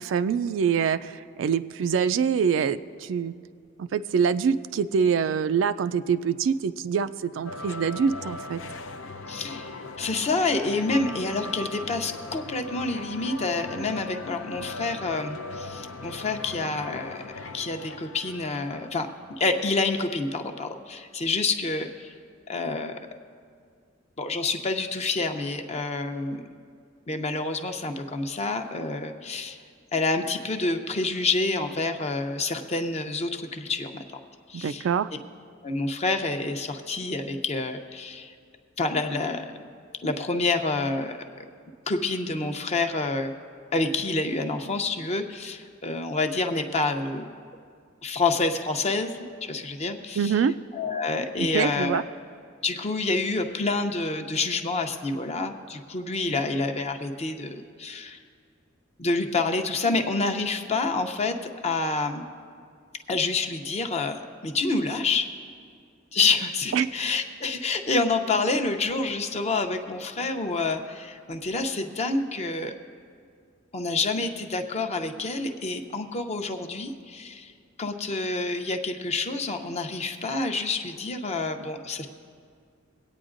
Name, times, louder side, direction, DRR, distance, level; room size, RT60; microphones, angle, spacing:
voice 1, 0.0-3.3 3.8-8.6 34.5-35.1 50.2-50.5 51.5-52.0 66.7-66.9, right 6 dB, 70° right, 13 dB, 0.3 m, -25 dB
sound 1, 7.4-19.4, left 2 dB, 80° left, 0.6 m, -39 dB
voice 2, 9.3-17.2 17.5-19.1 19.4-22.1 22.5-23.0 24.2-26.4 27.1-29.6 29.9-34.2 34.5-34.9 35.6-38.3 38.8-39.6 40.0-41.2 41.9-43.3 43.7-47.3 48.0-50.3 50.7-52.0 52.6-58.2 59.0-61.4 61.6-62.3 63.1-65.3 66.1-72.7 73.7-77.5 77.8-82.1, left 3 dB, 35° left, 5 dB, 0.7 m, -28 dB
24.0 x 8.7 x 2.5 m, 2.2 s
head